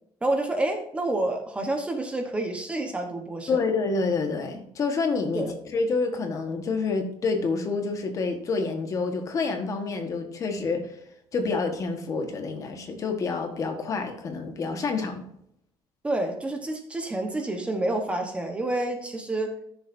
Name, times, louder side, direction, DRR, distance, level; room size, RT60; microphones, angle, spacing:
voice 1, 0.2-3.5 5.3-5.5 16.0-19.5, right 2 dB, 10° right, 4 dB, 1.1 m, -28 dB
voice 2, 3.5-5.5 5.7-11.0 11.3-15.3, left 4 dB, 35° left, 5 dB, 1.4 m, -28 dB
13.5 x 7.0 x 2.7 m, 0.72 s
cardioid pair, 175°, 10 cm